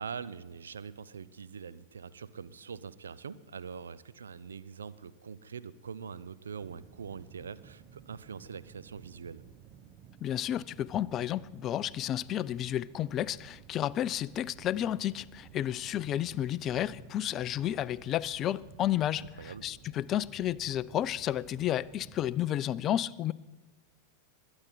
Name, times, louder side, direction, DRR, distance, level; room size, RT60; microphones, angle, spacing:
voice 1, 0.0-9.4 19.4-19.6, right 6 dB, 70° right, 0.6 m, -43 dB
sound 1, 6.6-22.6, right 9 dB, 35° right, 0.7 m, -54 dB
voice 2, 10.2-23.3, left 12 dB, 30° left, 0.4 m, -32 dB
21.5 x 9.8 x 4.2 m
figure-of-eight pair, 90°, 0 cm